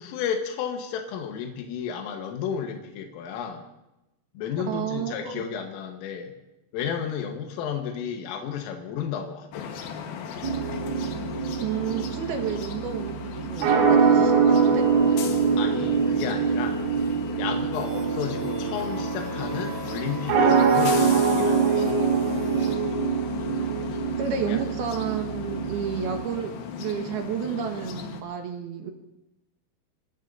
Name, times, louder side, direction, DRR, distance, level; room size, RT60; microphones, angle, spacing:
voice 1, 0.0-3.7 4.4-6.3 6.7-9.7 15.6-16.8 17.4-22.0 24.5-24.6, left 7 dB, 85° left, 3 dB, 3.9 m, -32 dB
voice 2, 4.7-5.4 11.6-14.8 24.2-28.9, right 7 dB, 65° right, 3 dB, 2.7 m, -31 dB
sound 1, 9.5-28.2, left 7 dB, 65° left, 2.6 m, -38 dB
sound 2, 10.4-26.2, right 5 dB, 85° right, 5.4 m, -24 dB
sound 3, 17.7-22.7, right 4 dB, 50° right, 2.2 m, -38 dB
26.0 x 18.5 x 2.7 m, 0.94 s
omnidirectional pair, 5.7 m